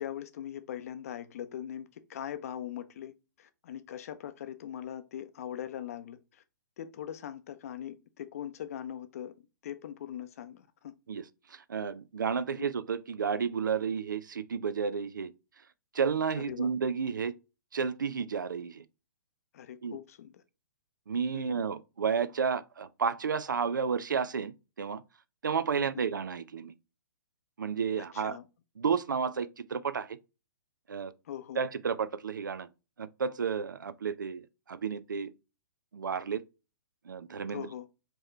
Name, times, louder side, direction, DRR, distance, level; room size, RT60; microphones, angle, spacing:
voice 1, 0.0-6.4 6.8-9.3 9.6-10.9 12.6-12.7 16.3-16.7 19.5-20.4 21.3-21.6 25.8-26.1 28.1-28.4 31.3-31.6 37.5-37.9, left 10 dB, 45° left, 0.6 m, -41 dB
voice 2, 11.5-15.3 15.9-17.3 17.7-18.8 19.8-20.0 21.1-25.0 25.4-26.7 27.6-28.4 28.8-30.2 30.9-31.1 31.6-32.7 33.0-35.3 35.9-36.4 37.1-37.7, right 6 dB, 70° right, 0.4 m, -32 dB
4.6 x 2.9 x 3.1 m
figure-of-eight pair, 120°, 11 cm